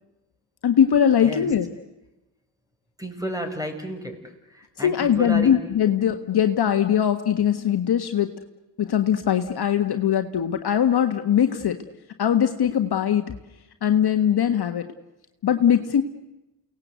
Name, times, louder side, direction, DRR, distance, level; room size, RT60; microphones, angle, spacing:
voice 1, 0.6-1.7 4.8-8.3 8.8-11.8 12.2-13.3 13.8-14.9 15.4-16.0, left 9 dB, 50° left, 7 dB, 1.5 m, -21 dB
voice 2, 3.0-4.2 4.5-5.5, equal, 5° right, 6 dB, 6.1 m, -32 dB
29.0 x 18.5 x 8.1 m, 0.97 s
hypercardioid pair, 45°, 49 cm